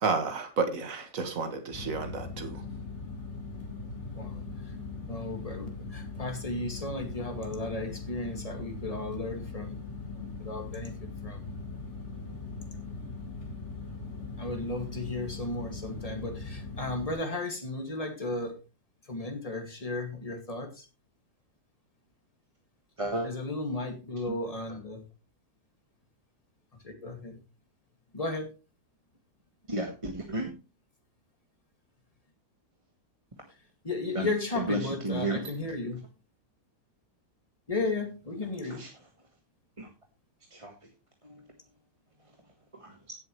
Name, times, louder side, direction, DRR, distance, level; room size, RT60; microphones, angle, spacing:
voice 1, 0.0-2.6, right 4 dB, 55° right, 7 dB, 2.0 m, -31 dB
sound 1, 1.7-17.1, left 3 dB, 40° left, 4.3 m, -40 dB
voice 2, 5.1-9.8 10.2-10.9 11.2-11.4 14.4-18.5 19.1-20.8 23.2-25.0 26.8-27.4 28.1-28.5 33.8-36.0 37.7-38.8, left 2 dB, 20° left, 4 dB, 2.3 m, -34 dB
voice 3, 23.0-23.3 24.3-24.4 29.7-30.5 34.1-34.3 34.5-35.4 38.6-38.9 39.8-39.9 40.5-40.7 41.2-41.3 42.7-43.1, right 1 dB, 20° right, 2 dB, 1.5 m, -33 dB
17.0 x 7.6 x 3.2 m, 0.29 s
omnidirectional pair, 1.8 m